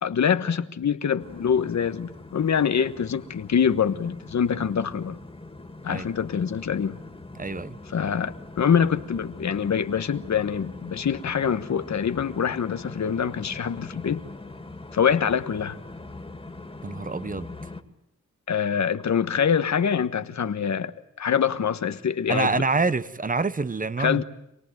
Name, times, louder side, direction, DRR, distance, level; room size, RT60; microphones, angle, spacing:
voice 1, 0.0-5.2 5.8-7.0 7.9-14.2 14.9-15.8 18.5-22.5 24.0-24.2, left 7 dB, 65° left, 1.2 m, -25 dB
sound 1, 1.2-17.8, left 2 dB, 20° left, 2.5 m, -42 dB
voice 2, 7.4-7.8 16.8-17.5 22.3-24.2, right 3 dB, 30° right, 0.9 m, -26 dB
26.5 x 18.5 x 9.3 m
cardioid pair, 65°, 30 cm